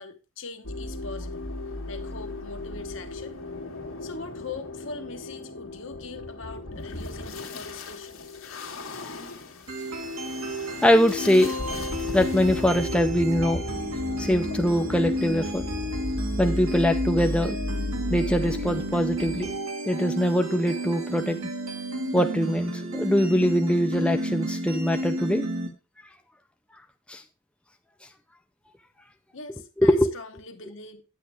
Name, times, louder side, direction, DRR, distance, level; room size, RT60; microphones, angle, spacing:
voice 1, 0.0-1.5 1.9-3.4 4.0-8.2 29.3-31.0, left 4 dB, 65° left, 1.1 m, -41 dB
sound 1, 0.6-19.6, left 1 dB, 85° left, 1.7 m, -35 dB
sound 2, 9.7-25.7, equal, 90° right, 2.0 m, -31 dB
voice 2, 10.8-11.5 12.1-13.6 14.2-15.6 16.4-17.6 18.1-19.5 19.9-21.4 22.1-25.5 27.1-27.2 29.8-30.1, equal, 5° left, 0.5 m, -23 dB
9.1 x 8.6 x 3.4 m
head